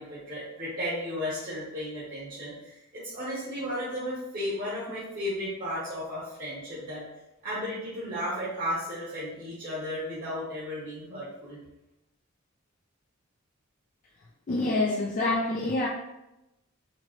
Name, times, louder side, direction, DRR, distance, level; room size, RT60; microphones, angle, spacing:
voice 1, 0.0-7.0 7.4-11.6, equal, 40° right, -9 dB, 1.1 m, -34 dB
voice 2, 14.5-15.9, left 2 dB, 35° left, -1 dB, 0.4 m, -26 dB
4.3 x 2.9 x 3.0 m, 0.94 s
head